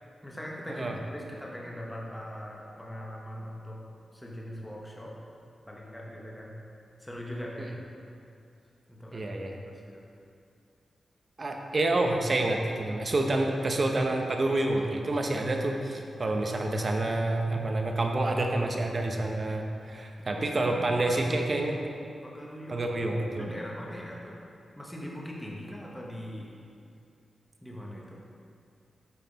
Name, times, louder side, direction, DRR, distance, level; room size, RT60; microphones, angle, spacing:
voice 1, 0.2-0.9 1.1-3.8 4.1-5.2 5.6-6.6 7.0-8.0 8.9-9.3 9.7-10.1 20.3-21.7 22.2-22.9 23.4-24.4 24.8-26.6 27.6-28.2, equal, 5° left, -3 dB, 1.0 m, -41 dB
voice 2, 9.1-9.6 11.4-21.8 22.7-23.5, right 2 dB, 35° right, 2 dB, 0.7 m, -28 dB
8.5 x 5.7 x 4.0 m, 2.5 s
wide cardioid pair, 140°, 0 cm